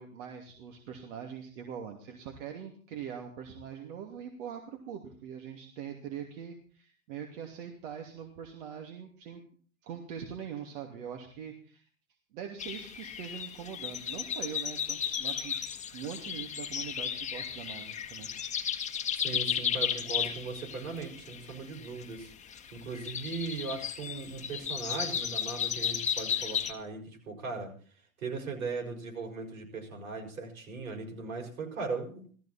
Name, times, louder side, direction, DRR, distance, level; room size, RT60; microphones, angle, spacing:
voice 1, 0.0-9.4 9.8-11.8 12.3-15.6 15.9-18.3, right 8 dB, 60° right, 2 dB, 2.8 m, -42 dB
sound 1, 12.6-26.7, left 8 dB, 15° left, 1.6 m, -34 dB
voice 2, 19.1-22.3 22.7-27.7 28.2-32.3, right 4 dB, 80° right, 2 dB, 5.9 m, -38 dB
17.5 x 14.5 x 4.4 m, 0.43 s
hypercardioid pair, 125°, 41 cm